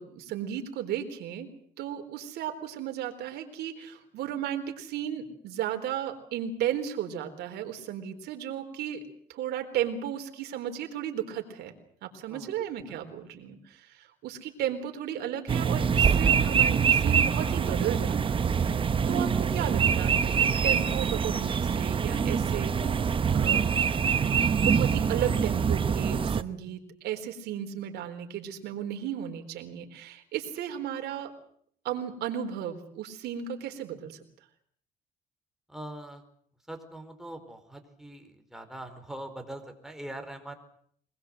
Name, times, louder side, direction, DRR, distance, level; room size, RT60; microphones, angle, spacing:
voice 1, 0.0-1.5 1.8-9.0 9.3-11.7 12.0-22.8 23.3-23.7 24.6-31.3 31.8-34.2, right 10 dB, 75° right, 5 dB, 4.0 m, -34 dB
voice 2, 12.3-13.0 35.7-36.2 36.7-40.5, right 1 dB, 5° right, 5 dB, 4.5 m, -42 dB
sound 1, 15.5-26.4, right 7 dB, 30° right, 1.0 m, -25 dB
24.0 x 20.5 x 7.8 m, 0.62 s
cardioid pair, 110°, 17 cm